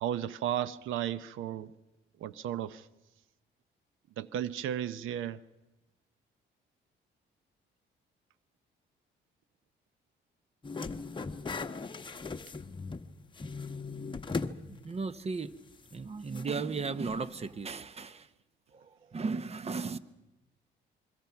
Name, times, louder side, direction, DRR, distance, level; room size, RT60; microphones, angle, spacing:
voice 1, 0.0-1.7 2.2-2.9 4.2-5.4, right 10 dB, 85° right, 16 dB, 0.7 m, -34 dB
sound 1, 10.6-13.1 13.4-14.6 15.0-15.1 16.4-16.5, left 4 dB, 25° left, 1.1 m, -37 dB
voice 2, 14.7-15.5 15.9-18.3 18.7-20.0, right 4 dB, 30° right, 15 dB, 1.0 m, -36 dB
26.5 x 22.0 x 5.9 m, 1.0 s
cardioid pair, 90°, 20 cm